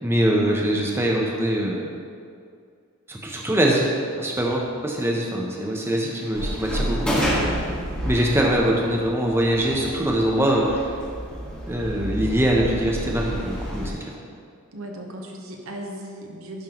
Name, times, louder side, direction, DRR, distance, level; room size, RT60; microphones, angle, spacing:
voice 1, 0.0-1.9 3.1-3.9 4.2-7.2 8.0-10.9 11.7-14.1, right 1 dB, 10° right, -1 dB, 0.6 m, -23 dB
sound 1, 6.3-13.9, equal, 5° left, 1.1 m, -29 dB
voice 2, 14.7-16.6, right 1 dB, 70° right, 1 dB, 0.9 m, -36 dB
10.5 x 5.3 x 2.9 m, 2.3 s
head